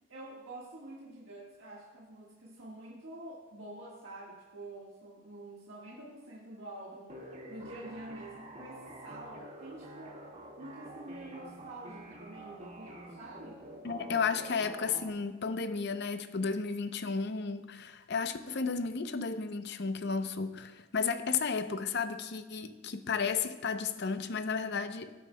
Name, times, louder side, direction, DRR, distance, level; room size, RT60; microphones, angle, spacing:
voice 1, 0.1-7.2 7.5-10.2 10.6-13.6, right 1 dB, 65° right, 1.6 m, -47 dB
sound 1, 7.1-15.1, right 1 dB, 35° right, 1.8 m, -48 dB
voice 2, 13.8-25.1, left 5 dB, 55° left, 0.6 m, -33 dB
17.5 x 9.2 x 2.2 m
head